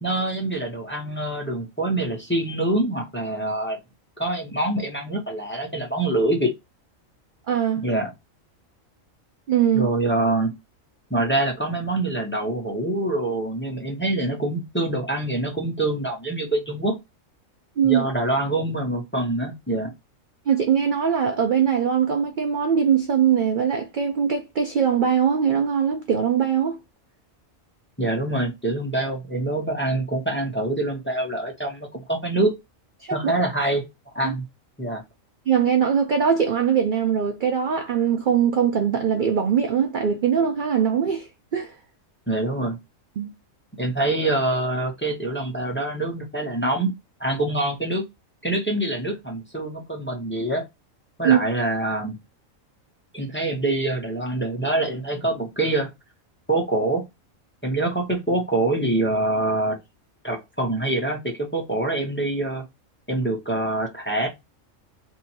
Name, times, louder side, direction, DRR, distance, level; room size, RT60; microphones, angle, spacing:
voice 1, 0.0-3.8 4.2-6.5 7.8-8.1 9.7-10.5 11.1-16.9 17.8-19.9 28.0-32.5 33.1-33.8 34.1-34.4 34.8-35.0 42.3-42.8 43.8-46.9 47.2-48.0 48.4-50.6 51.2-52.2 53.1-55.9 56.5-57.0 57.6-59.8 60.2-62.6 63.1-64.3, right 2 dB, 10° left, 0.8 m, -25 dB
voice 2, 7.5-7.9 9.5-9.9 17.8-18.0 20.5-26.8 33.0-33.3 34.2-34.3 35.5-41.7 43.2-43.3 51.2-51.4, right 8 dB, 65° right, 0.5 m, -21 dB
2.7 x 2.7 x 4.3 m
omnidirectional pair, 1.4 m